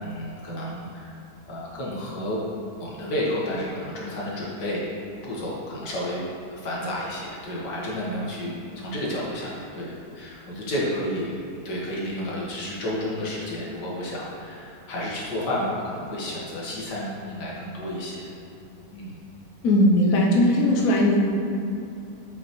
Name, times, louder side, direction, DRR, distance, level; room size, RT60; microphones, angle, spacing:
voice 1, 0.0-1.1 1.5-2.4 2.8-4.8 5.2-6.2 6.5-11.3 11.7-18.2 18.9-19.1 20.4-20.6, left 1 dB, 80° left, -5 dB, 2.1 m, -31 dB
voice 2, 19.6-21.2, left 1 dB, 65° left, -1 dB, 1.1 m, -19 dB
8.1 x 5.9 x 3.1 m, 2.7 s
omnidirectional pair, 1.8 m